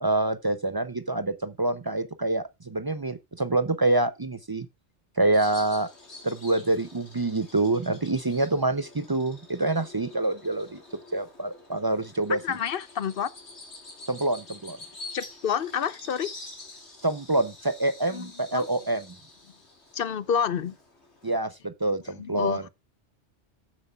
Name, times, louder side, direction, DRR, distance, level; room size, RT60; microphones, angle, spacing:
voice 1, 0.0-4.7 5.2-5.9 6.2-10.8 11.1-12.6 14.1-14.8 17.0-19.0 21.2-22.7, right 2 dB, 30° right, 0.4 m, -26 dB
Bird vocalization bird call bird song, 5.3-21.4, left 2 dB, 75° left, 3.1 m, -47 dB
voice 2, 12.3-13.3 15.1-16.3 18.1-18.7 19.9-20.7 22.2-22.7, left 8 dB, 60° left, 0.9 m, -29 dB
14.5 x 7.4 x 2.3 m
omnidirectional pair, 1.2 m